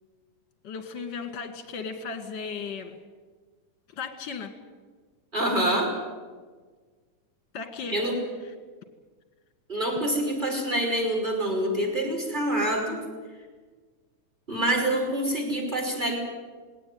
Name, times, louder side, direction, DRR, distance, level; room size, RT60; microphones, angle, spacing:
voice 1, 0.6-3.0 4.0-4.5 7.5-8.0 8.4-8.5, left 5 dB, 40° left, 6 dB, 2.3 m, -36 dB
voice 2, 5.3-5.9 7.9-8.2 9.7-13.0 14.5-16.2, right 1 dB, 15° right, 2 dB, 5.3 m, -26 dB
20.0 x 18.0 x 9.3 m, 1.5 s
omnidirectional pair, 3.6 m